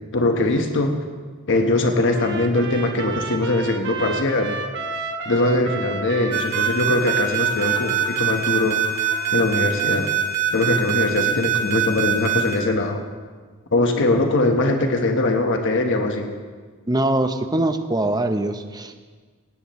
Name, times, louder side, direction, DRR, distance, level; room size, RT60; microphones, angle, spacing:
voice 1, 0.1-0.9 1.5-4.6 5.2-8.8 9.3-10.1 10.5-13.0 13.7-16.3, left 2 dB, 60° left, 4 dB, 1.3 m, -21 dB
Trumpet, 2.1-10.2, right 4 dB, 55° right, 1.0 m, -33 dB
sound 1, 6.3-12.6, right 13 dB, 75° right, 4.4 m, -22 dB
voice 2, 16.9-19.0, right 1 dB, 20° right, 8 dB, 0.8 m, -22 dB
18.0 x 17.5 x 3.1 m, 1.5 s
head